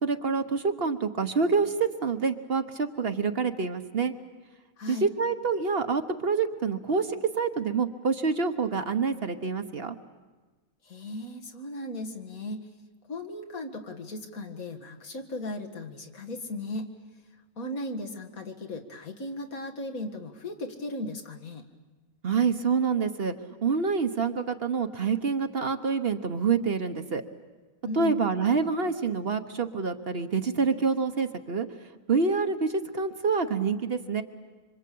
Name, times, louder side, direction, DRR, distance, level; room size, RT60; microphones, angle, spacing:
voice 1, 0.0-4.1 4.9-10.0 22.2-23.3 23.6-27.2 28.0-31.7 32.1-34.2, right 5 dB, 45° right, 8 dB, 1.2 m, -27 dB
voice 2, 4.8-5.1 10.8-12.7 13.1-16.9 17.6-21.6 27.8-28.2, left 2 dB, 75° left, 3 dB, 2.3 m, -36 dB
26.0 x 25.0 x 8.5 m, 1.3 s
omnidirectional pair, 1.5 m